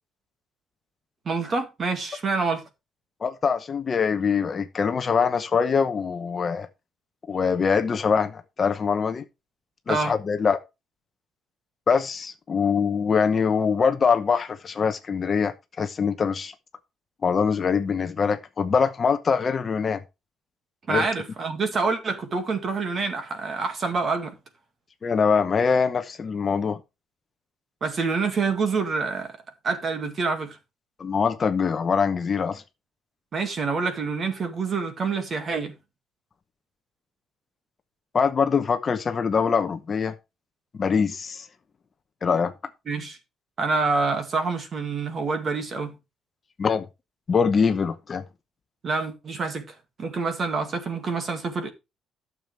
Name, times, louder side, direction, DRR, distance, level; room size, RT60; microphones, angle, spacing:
voice 1, 1.3-2.6 9.9-10.1 20.9-24.3 27.8-29.4 29.6-30.6 33.3-35.8 42.9-43.2 43.6-46.0 48.8-49.7 50.0-51.7, right 4 dB, 30° right, 2.1 m, -27 dB
voice 2, 3.2-6.7 7.3-9.2 9.9-10.6 11.9-16.5 17.2-20.0 20.9-21.0 25.0-26.8 31.0-32.6 38.1-40.1 40.7-41.5 42.2-42.5 46.6-46.9 47.3-48.2, left 6 dB, 25° left, 0.9 m, -23 dB
12.5 x 7.0 x 3.4 m
cardioid pair, 160°, 0 cm